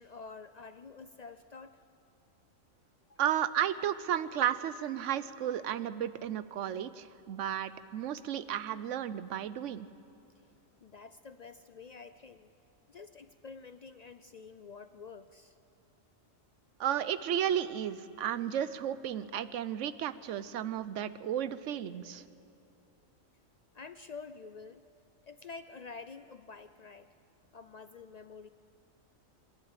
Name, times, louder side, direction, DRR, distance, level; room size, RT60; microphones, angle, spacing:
voice 1, 0.0-1.8 3.1-3.2 10.8-12.5 12.9-15.6 22.1-22.3 23.7-24.8 25.2-27.1 27.5-28.5, left 4 dB, 65° left, 11 dB, 0.4 m, -48 dB
voice 2, 3.2-9.9 16.8-22.2, right 10 dB, 70° right, 15 dB, 1.0 m, -33 dB
25.0 x 11.5 x 8.9 m, 2.9 s
omnidirectional pair, 1.3 m